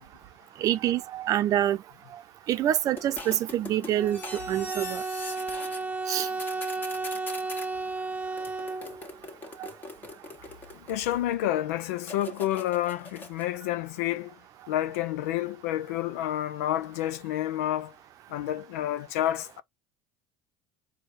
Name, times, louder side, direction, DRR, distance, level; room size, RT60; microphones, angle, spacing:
voice 1, 0.6-1.8 2.5-4.2 4.5-5.0 6.1-6.3 9.6-9.7, right 11 dB, 50° right, 0.6 m, -26 dB
sound 1, 3.0-5.8 6.1-7.7 8.4-11.3 12.0-13.5, left 2 dB, 25° left, 1.6 m, -42 dB
Bowed string instrument, 3.9-9.2, right 3 dB, 15° right, 0.8 m, -33 dB
voice 2, 10.9-14.3 14.7-17.9 18.3-19.6, left 13 dB, 80° left, 0.5 m, -29 dB
4.4 x 2.3 x 4.7 m
supercardioid pair, 100°, 8 cm